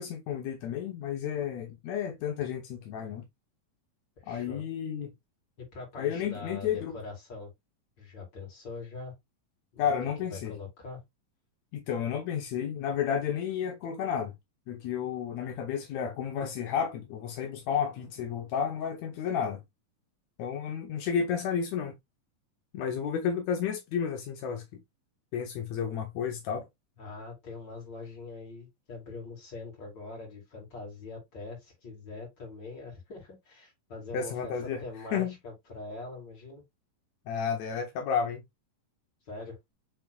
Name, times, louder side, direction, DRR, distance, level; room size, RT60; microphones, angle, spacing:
voice 1, 0.0-3.3 4.3-5.1 6.0-7.0 9.8-10.6 11.7-14.3 14.7-19.6 20.4-22.0 22.7-24.8 25.3-26.7 34.1-34.8 35.1-35.3 37.3-38.4, left 7 dB, 80° left, 1.6 m, -32 dB
voice 2, 4.2-4.6 5.6-7.5 8.0-9.2 9.7-9.9 10.3-11.0 27.0-36.6 39.3-39.6, left 3 dB, 30° left, 2.9 m, -43 dB
6.6 x 3.4 x 2.3 m
omnidirectional pair, 4.1 m